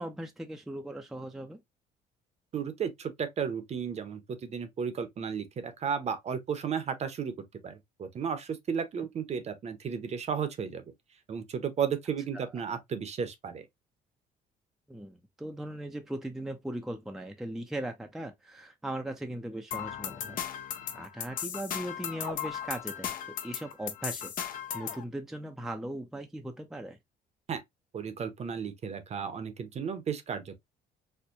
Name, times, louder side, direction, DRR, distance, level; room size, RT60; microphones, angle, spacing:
voice 1, 0.0-1.6 9.0-9.1 12.3-12.6 14.9-20.4 20.9-27.0, right 1 dB, ahead, 0.5 m, -39 dB
voice 2, 2.5-10.8 11.3-13.6 27.5-27.6 27.9-30.5, right 7 dB, 40° right, 0.7 m, -34 dB
sound 1, 19.7-25.0, left 9 dB, 55° left, 0.6 m, -37 dB
4.3 x 2.2 x 2.6 m
cardioid pair, 110°, 17 cm